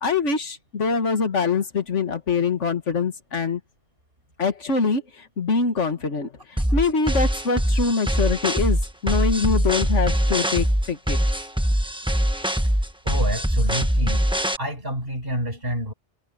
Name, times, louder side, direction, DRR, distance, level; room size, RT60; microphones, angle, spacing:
voice 1, 0.0-3.6 4.4-11.2, left 4 dB, 75° left, 2.1 m, -24 dB
sound 1, 6.6-14.6, equal, 5° right, 1.3 m, -22 dB
voice 2, 13.0-14.2 14.6-15.9, equal, 50° right, 7.1 m, -28 dB
omnidirectional pair, 1.2 m